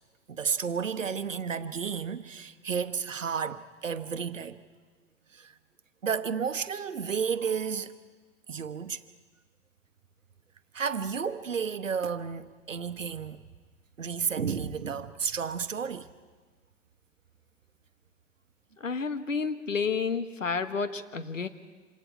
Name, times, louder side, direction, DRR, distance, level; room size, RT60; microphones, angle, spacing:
voice 1, 0.3-4.6 5.3-5.6 6.0-8.0 8.5-9.0 10.7-13.4 14.0-16.1, right 6 dB, 85° right, 1.1 m, -32 dB
voice 2, 18.8-21.5, left 5 dB, 85° left, 1.3 m, -30 dB
27.0 x 27.0 x 4.7 m
figure-of-eight pair, 95°, 38 cm